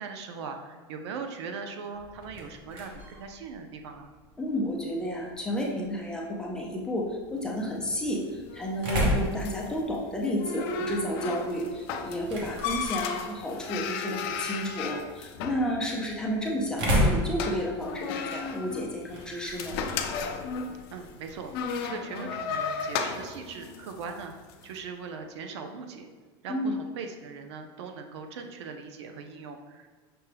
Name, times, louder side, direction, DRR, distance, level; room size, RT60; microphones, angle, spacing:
voice 1, 0.0-4.1 20.9-26.1 26.4-29.9, right 5 dB, 85° right, 5 dB, 0.5 m, -40 dB
sound 1, 1.9-21.8, equal, 40° right, 0.9 m, -35 dB
voice 2, 4.4-19.8 26.5-26.7, equal, 5° left, -3 dB, 0.5 m, -31 dB
sound 2, 7.4-24.7, left 5 dB, 60° left, 0.4 m, -36 dB
5.9 x 2.2 x 3.3 m, 1.4 s
supercardioid pair, 160°, 14 cm